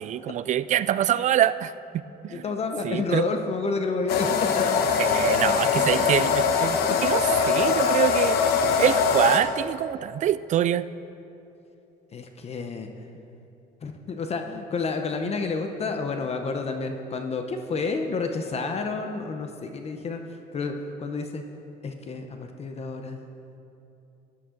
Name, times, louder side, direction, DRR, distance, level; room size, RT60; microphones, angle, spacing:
voice 1, 0.0-1.7 2.2-2.4 2.8-3.2 5.0-8.4 8.8-10.9, right 11 dB, 45° right, 16 dB, 0.4 m, -25 dB
voice 2, 2.3-4.7 5.8-6.0 12.1-12.9 13.8-21.4 21.8-23.2, left 4 dB, 40° left, 5 dB, 0.9 m, -30 dB
sound 1, 4.1-9.4, left 6 dB, 70° left, 1.1 m, -22 dB
15.0 x 11.0 x 3.9 m, 2.8 s
cardioid pair, 110°, 17 cm